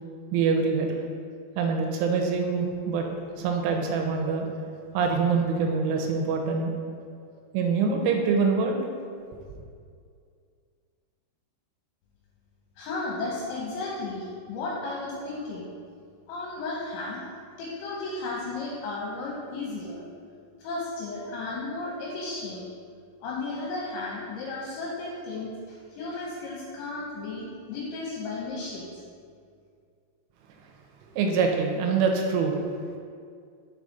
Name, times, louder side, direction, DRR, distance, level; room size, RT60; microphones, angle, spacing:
voice 1, 0.3-0.9 1.6-3.0 3.4-4.5 4.9-6.7 7.5-8.8 31.2-32.6, right 5 dB, 85° right, 2 dB, 3.1 m, -24 dB
voice 2, 12.8-15.7 16.3-17.2 17.6-20.0 20.6-22.7 23.2-28.9, left 3 dB, 75° left, -5 dB, 3.1 m, -34 dB
6.7 x 4.8 x 4.0 m, 2.2 s
omnidirectional pair, 5.6 m